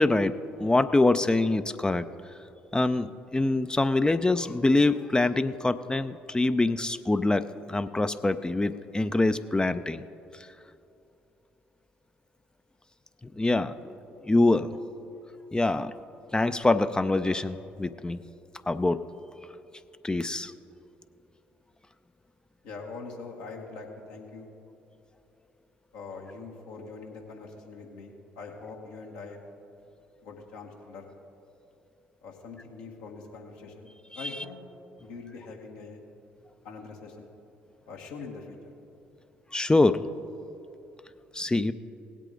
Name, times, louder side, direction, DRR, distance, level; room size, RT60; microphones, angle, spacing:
voice 1, 0.0-2.1 2.7-10.0 13.3-13.7 14.3-14.8 15.5-15.9 16.3-18.2 18.7-19.0 20.0-20.5 34.1-34.3 39.5-40.0 41.3-41.7, left 2 dB, 15° left, 11 dB, 0.4 m, -25 dB
voice 2, 22.6-24.5 25.9-29.4 30.2-31.1 32.2-34.6 35.0-36.0 36.6-37.3 37.9-38.6, left 4 dB, 75° left, 0 dB, 1.6 m, -43 dB
18.0 x 8.3 x 3.9 m, 2.8 s
hypercardioid pair, 50°, 5 cm